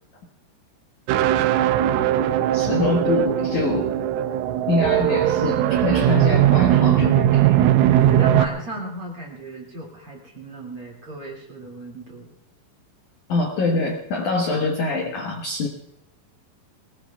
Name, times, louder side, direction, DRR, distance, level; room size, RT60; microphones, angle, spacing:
sound 1, 1.1-8.5, right 12 dB, 85° right, 3.2 m, -19 dB
voice 1, 2.5-3.9 4.7-7.6 8.3-8.4 13.3-15.7, left 3 dB, 75° left, 1 dB, 1.8 m, -24 dB
voice 2, 7.9-12.3, right 1 dB, 40° right, -1 dB, 2.4 m, -35 dB
22.5 x 19.5 x 2.4 m, 0.90 s
omnidirectional pair, 5.7 m